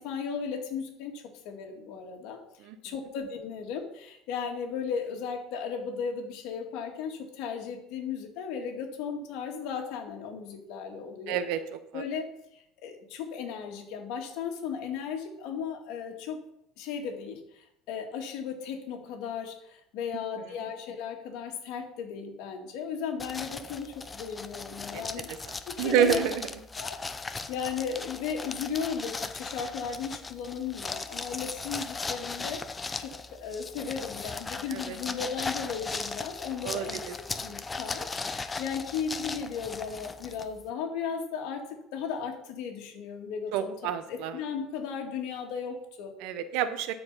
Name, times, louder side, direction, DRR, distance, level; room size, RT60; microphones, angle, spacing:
voice 1, 0.0-2.4 2.8-11.4 11.9-12.3 12.5-16.4 16.8-25.3 25.7-26.2 26.8-32.6 33.0-33.1 33.4-37.0 37.4-41.6 41.9-43.7 44.1-46.1, left 6 dB, 70° left, 2 dB, 2.2 m, -36 dB
voice 2, 11.3-11.6 11.9-12.0 24.9-25.0 25.5-26.5 34.7-35.0 36.6-37.1 43.5-44.3 46.2-46.9, right 9 dB, 70° right, 11 dB, 0.9 m, -28 dB
sound 1, 23.2-40.7, left 4 dB, 15° left, 0.6 m, -38 dB
13.0 x 4.8 x 5.6 m, 0.80 s
cardioid pair, 135°, 0 cm